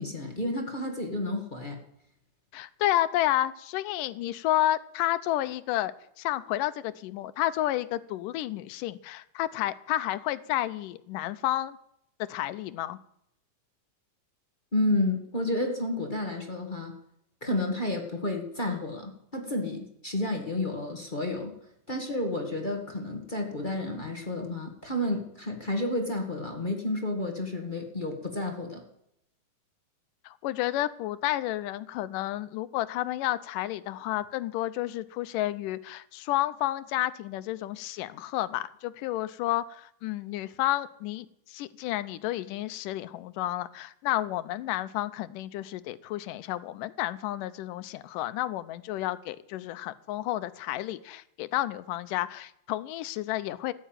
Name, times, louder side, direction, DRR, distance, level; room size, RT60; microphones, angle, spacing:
voice 1, 0.0-1.8 14.7-16.9 17.4-21.6 21.9-28.8, left 1 dB, 20° left, 2 dB, 1.4 m, -31 dB
voice 2, 2.5-11.8 12.2-13.0 30.2-53.7, left 14 dB, 85° left, 14 dB, 2.3 m, -31 dB
14.0 x 10.0 x 9.1 m, 0.77 s
omnidirectional pair, 3.8 m